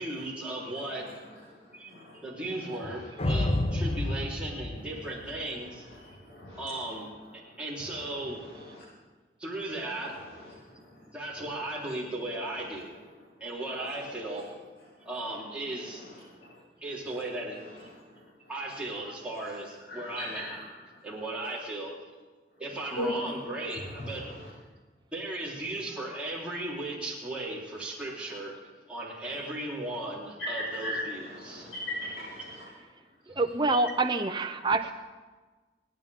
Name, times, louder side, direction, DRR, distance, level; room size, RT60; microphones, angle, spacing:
voice 1, 0.0-1.2 1.7-1.9 2.2-5.9 6.6-7.1 7.6-8.4 9.4-10.1 10.7-12.9 13.4-14.5 15.1-16.0 16.8-17.6 18.5-20.5 21.0-21.9 22.6-24.2 25.1-28.5 28.9-31.7 33.3-33.4, right 1 dB, 5° right, -7 dB, 4.0 m, -36 dB
voice 2, 0.6-2.2 2.5-3.4 3.6-4.1 4.7-8.8 9.5-11.0 11.3-11.6 12.5-14.5 14.8-15.1 15.5-17.3 17.5-18.5 19.2-19.5 19.8-21.1 22.9-23.3 23.6-24.5 28.3-28.4 29.2-29.4 30.4-32.7 33.0-33.1, left 1 dB, 85° left, -11 dB, 5.7 m, -42 dB
sound 1, 3.2-5.7, left 1 dB, 30° left, 0.7 m, -29 dB
voice 3, 33.3-34.9, right 3 dB, 25° right, 6 dB, 0.7 m, -26 dB
29.5 x 10.5 x 3.7 m, 1.3 s
head